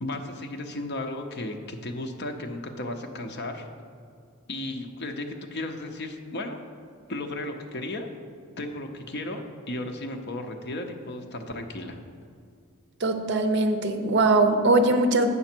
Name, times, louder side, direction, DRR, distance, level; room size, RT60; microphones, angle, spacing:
voice 1, 0.0-3.7 4.5-6.6 7.1-8.1 8.6-9.4 9.7-12.0, left 1 dB, 50° left, 4 dB, 0.7 m, -34 dB
voice 2, 13.0-15.3, right 2 dB, 55° right, 7 dB, 0.6 m, -21 dB
8.3 x 5.9 x 4.4 m, 2.2 s
head